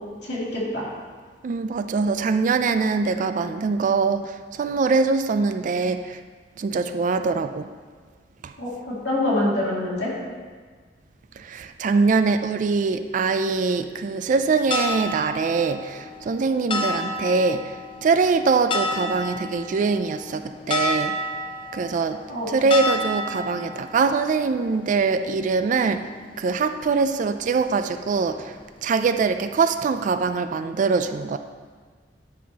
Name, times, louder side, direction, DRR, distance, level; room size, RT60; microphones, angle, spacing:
voice 1, 0.2-0.8 8.6-10.1 22.3-22.5, left 1 dB, 75° left, -7 dB, 2.2 m, -25 dB
voice 2, 1.4-6.2 6.6-7.7 8.4-8.5 11.4-21.2 21.7-26.1 26.4-28.5 28.8-31.4, right 4 dB, 45° right, 10 dB, 0.3 m, -23 dB
sound 1, 14.3-29.6, left 2 dB, 30° left, 0.5 m, -32 dB
9.4 x 5.6 x 2.9 m, 1.5 s
head